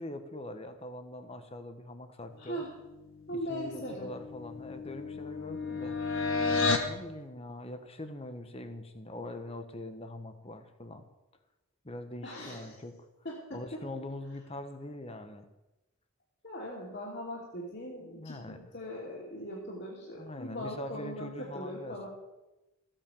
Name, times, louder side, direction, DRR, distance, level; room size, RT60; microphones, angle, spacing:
voice 1, 0.0-2.6 3.3-6.0 6.8-11.1 11.8-13.1 13.5-15.5 18.0-18.6 20.2-22.1, left 1 dB, 25° left, 8 dB, 1.2 m, -43 dB
voice 2, 2.4-2.7 3.3-4.1 12.2-12.8 13.2-13.8 16.4-22.1, equal, 50° left, -4 dB, 2.9 m, -40 dB
sound 1, 3.8-6.9, left 4 dB, 65° left, 1.7 m, -31 dB
15.0 x 9.0 x 7.0 m, 1.0 s
head